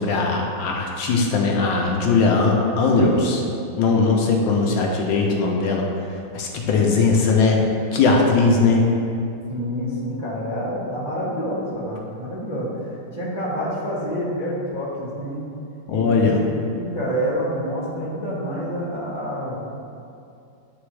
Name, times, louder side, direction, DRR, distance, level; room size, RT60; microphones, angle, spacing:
voice 1, 0.0-3.4 3.7-5.8 6.3-7.6 7.9-8.8 15.9-16.4, left 4 dB, 75° left, 0 dB, 1.3 m, -19 dB
voice 2, 9.5-15.4 15.9-19.6, equal, 20° right, -8 dB, 0.6 m, -28 dB
9.5 x 3.5 x 3.2 m, 2.5 s
omnidirectional pair, 2.3 m